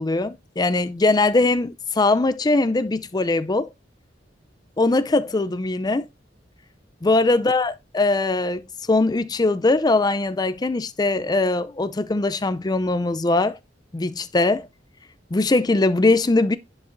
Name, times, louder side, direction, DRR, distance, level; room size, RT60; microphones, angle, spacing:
voice 1, 0.0-3.7 4.8-6.1 7.0-8.6 8.9-13.6 13.9-14.7 15.3-16.6, left 2 dB, 20° left, 0.5 m, -21 dB
11.0 x 5.0 x 2.6 m
head